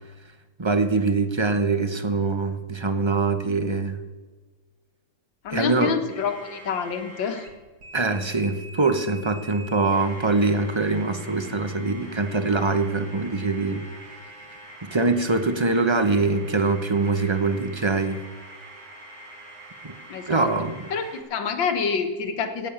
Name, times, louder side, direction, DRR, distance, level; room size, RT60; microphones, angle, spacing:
voice 1, 0.6-4.0 5.5-5.9 7.9-13.9 14.8-18.2 19.8-19.9 20.3-20.8, right 3 dB, 25° right, 8 dB, 0.7 m, -23 dB
voice 2, 5.4-7.5 20.1-20.5 20.9-22.7, left 6 dB, 80° left, 6 dB, 2.1 m, -27 dB
sound 1, 6.1-7.5 7.8-21.2, right 1 dB, 60° right, 2.9 m, -44 dB
14.5 x 9.1 x 8.7 m, 1.3 s
omnidirectional pair, 2.1 m